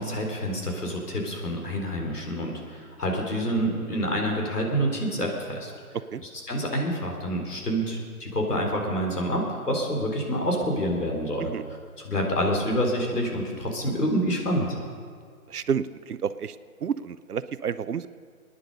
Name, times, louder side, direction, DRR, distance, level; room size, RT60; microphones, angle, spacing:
voice 1, 0.0-5.7 6.5-11.5 12.0-14.8, equal, 85° left, 1 dB, 4.0 m, -27 dB
voice 2, 15.5-18.1, right 7 dB, 80° right, 14 dB, 0.8 m, -30 dB
25.0 x 9.9 x 5.4 m, 2.1 s
hypercardioid pair, 160°, 45 cm